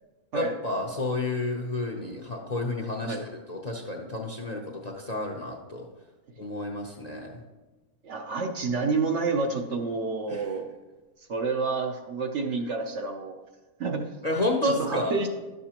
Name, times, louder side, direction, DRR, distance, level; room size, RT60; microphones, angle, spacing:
voice 1, 0.3-5.8 6.4-7.3 10.3-10.4 14.2-15.2, left 2 dB, 40° left, 1 dB, 0.7 m, -30 dB
voice 2, 8.0-10.7 11.3-13.4 13.8-14.2 14.6-15.3, right 4 dB, 60° right, 3 dB, 0.9 m, -29 dB
12.0 x 6.7 x 2.9 m, 1.2 s
omnidirectional pair, 1.5 m